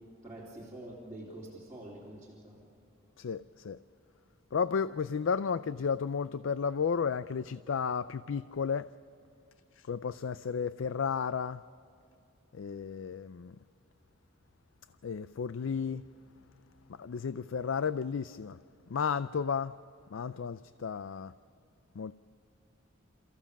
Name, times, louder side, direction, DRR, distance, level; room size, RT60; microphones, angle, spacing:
voice 1, 0.2-2.6, right 1 dB, 15° right, 3.6 m, -46 dB
voice 2, 3.2-3.8 4.5-8.9 9.8-11.6 12.5-13.6 15.0-16.0 16.9-18.6 18.9-19.7 20.1-21.3 22.0-22.1, left 6 dB, 65° left, 0.4 m, -33 dB
29.0 x 15.0 x 7.3 m
head